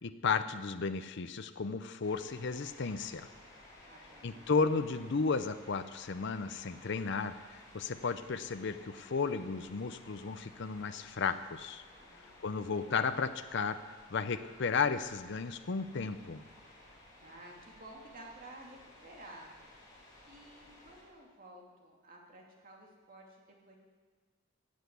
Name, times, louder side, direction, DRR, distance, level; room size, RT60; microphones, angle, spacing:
voice 1, 0.0-3.3 4.2-11.8 12.4-13.8 14.1-16.4, left 5 dB, 55° left, 10 dB, 0.6 m, -34 dB
sound 1, 2.0-21.0, left 1 dB, 15° left, 4.8 m, -57 dB
voice 2, 3.8-4.5 12.0-12.4 17.2-19.5 20.3-23.8, right 1 dB, 45° right, -1 dB, 2.6 m, -53 dB
15.0 x 8.1 x 9.5 m, 1.5 s
head